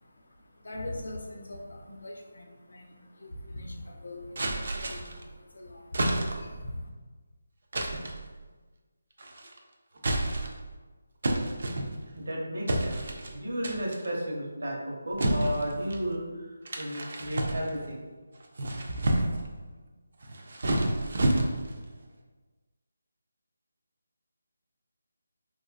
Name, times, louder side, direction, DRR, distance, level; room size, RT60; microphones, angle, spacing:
voice 1, 0.0-6.9, left 1 dB, 80° left, 1 dB, 0.6 m, -42 dB
sound 1, 4.3-5.2 5.9-6.6 7.7-8.2 9.2-9.6 10.0-10.7 11.2-12.2 12.7-13.3 13.6-14.1 15.2-16.0 16.6-17.9 18.4-19.5 20.2-21.8, right 1 dB, 45° right, 0.4 m, -29 dB
voice 2, 12.1-18.0, equal, 80° right, -3 dB, 0.9 m, -34 dB
3.1 x 2.4 x 2.3 m, 1.3 s
figure-of-eight pair, 175°, 0 cm